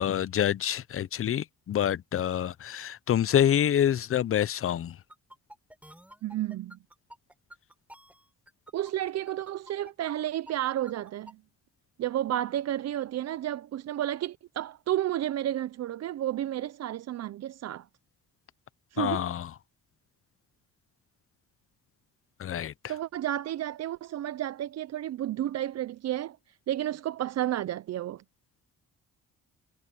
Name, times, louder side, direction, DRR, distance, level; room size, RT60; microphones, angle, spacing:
voice 1, 0.0-5.0 19.0-19.5 22.4-22.7, left 10 dB, 45° left, 0.7 m, -27 dB
sound 1, 5.1-11.3, right 1 dB, 5° right, 6.0 m, -50 dB
voice 2, 6.2-6.8 8.7-11.4 12.0-17.8 18.9-19.2 22.9-26.4 26.7-28.2, right 12 dB, 60° right, 0.6 m, -31 dB
cardioid pair, 90°, 30 cm